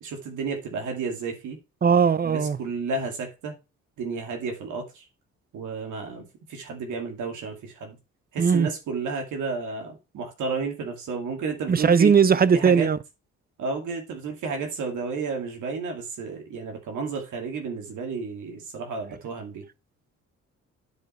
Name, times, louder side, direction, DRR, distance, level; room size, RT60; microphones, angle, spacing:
voice 1, 0.0-1.6 2.2-3.5 4.0-5.0 5.5-8.0 8.3-12.1 12.5-12.9 13.6-19.6, right 4 dB, 75° right, 2.4 m, -32 dB
voice 2, 1.8-2.6 8.4-8.7 11.7-13.0, right 6 dB, 30° right, 0.7 m, -19 dB
9.5 x 4.9 x 4.4 m
cardioid pair, 90°, 30 cm